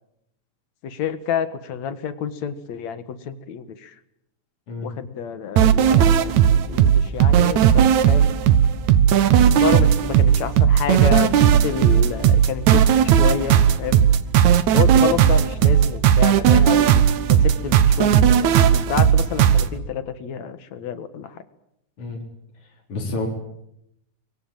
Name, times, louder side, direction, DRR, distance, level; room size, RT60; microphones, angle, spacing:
voice 1, 0.8-4.0 4.8-8.3 9.2-14.0 14.7-17.0 17.3-21.4, left 7 dB, 65° left, 11 dB, 2.7 m, -29 dB
sound 1, 5.6-19.7, right 9 dB, 70° right, 2.5 m, -16 dB
voice 2, 22.6-23.3, left 2 dB, 50° left, -1 dB, 5.2 m, -30 dB
25.0 x 23.0 x 9.0 m, 0.82 s
omnidirectional pair, 3.5 m